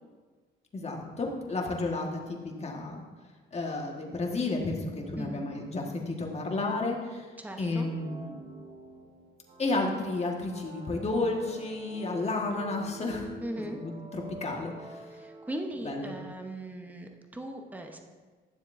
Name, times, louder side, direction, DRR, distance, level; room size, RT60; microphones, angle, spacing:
voice 1, 0.7-3.0 3.5-7.3 7.6-8.4 9.6-13.3 13.7-15.0 15.8-16.1, left 2 dB, 30° left, 0 dB, 1.5 m, -32 dB
voice 2, 5.2-5.5 7.4-7.9 13.4-13.8 15.1-18.0, right 1 dB, 10° right, 4 dB, 0.8 m, -39 dB
sound 1, 7.5-16.1, right 2 dB, 35° right, 1.1 m, -47 dB
12.0 x 7.1 x 2.6 m, 1.4 s
cardioid pair, 90°, 20 cm